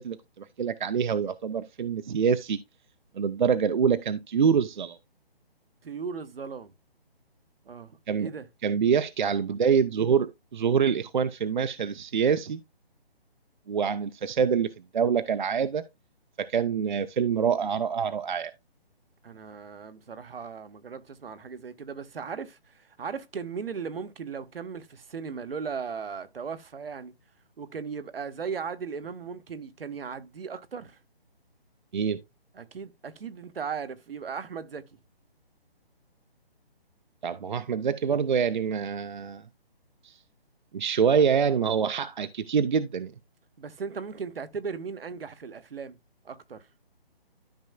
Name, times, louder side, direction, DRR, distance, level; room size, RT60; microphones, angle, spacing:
voice 1, 0.0-2.6 3.1-5.0 8.1-8.3 8.6-12.6 13.7-15.8 16.4-18.5 31.9-32.2 37.2-39.4 40.0-40.2 40.7-43.1, right 6 dB, 50° right, 0.6 m, -25 dB
voice 2, 5.8-6.7 7.6-8.5 19.2-27.1 27.6-31.0 32.5-34.9 43.6-46.0 46.2-46.7, right 6 dB, 70° right, 1.1 m, -37 dB
13.0 x 5.4 x 2.2 m
hypercardioid pair, 160°, 31 cm